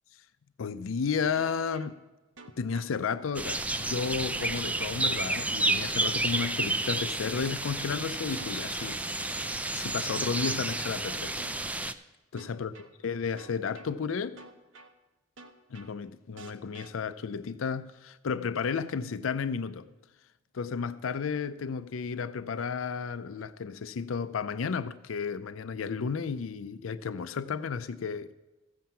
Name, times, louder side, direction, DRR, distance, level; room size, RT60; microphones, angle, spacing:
voice 1, 0.6-2.0 2.6-9.4 9.7-11.3 12.3-12.7 13.0-14.4 15.7-19.9 20.5-28.3, left 5 dB, 85° left, 0.5 m, -33 dB
sound 1, 1.4-1.9 2.4-2.9 3.4-3.9 4.4-4.9 5.4-5.9 6.4-6.9 7.4-7.9 8.4-8.9 9.4-9.9 10.4-10.9 11.4-11.9 12.4-12.9 13.4-13.9 14.4-14.9 15.4-15.9 16.4-16.9, right 3 dB, 70° right, 1.1 m, -49 dB
sound 2, 3.3-11.9, right 2 dB, 5° right, 0.3 m, -31 dB
15.0 x 7.6 x 5.6 m
head